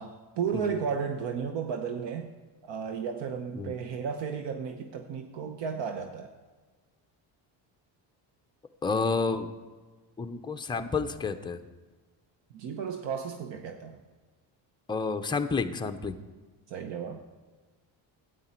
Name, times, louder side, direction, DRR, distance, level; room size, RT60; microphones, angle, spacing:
voice 1, 0.0-2.3 2.6-6.3 12.5-14.0 16.7-17.2, right 6 dB, 75° right, 5 dB, 0.9 m, -33 dB
voice 2, 8.8-9.5 10.2-11.6 14.9-16.2, left 4 dB, 10° left, 6 dB, 0.5 m, -30 dB
12.5 x 9.0 x 4.4 m, 1.3 s
cardioid pair, 135°, 43 cm